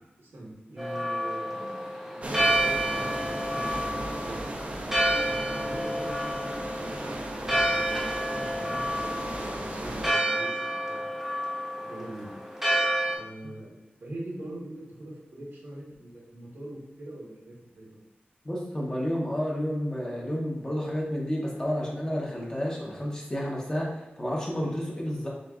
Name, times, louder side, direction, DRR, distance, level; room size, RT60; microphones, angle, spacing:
voice 1, 0.2-4.4 5.2-6.5 6.8-7.0 7.3-11.0 11.8-12.4 13.2-13.7 14.0-17.9, right 1 dB, 85° right, -5 dB, 1.4 m, -43 dB
Church bell, 0.8-13.2, right 1 dB, 10° right, 1.0 m, -29 dB
sound 1, 2.2-10.1, right 1 dB, 35° right, 0.6 m, -36 dB
voice 2, 18.4-25.3, equal, 20° left, -3 dB, 1.0 m, -30 dB
6.5 x 2.6 x 2.4 m, 0.96 s
wide cardioid pair, 95°, 4 cm